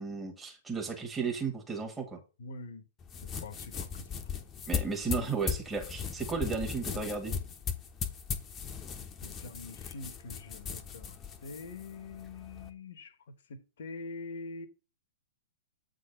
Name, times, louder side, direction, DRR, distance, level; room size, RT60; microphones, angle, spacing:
voice 1, 0.0-2.2 4.7-7.3, right 5 dB, 10° right, 1.6 m, -34 dB
voice 2, 2.4-2.8 3.4-4.0 9.2-13.1 13.5-14.7, left 3 dB, 55° left, 1.1 m, -44 dB
sound 1, 3.0-12.7, left 7 dB, 20° left, 1.0 m, -38 dB
8.2 x 3.9 x 5.2 m
figure-of-eight pair, 110°, 0 cm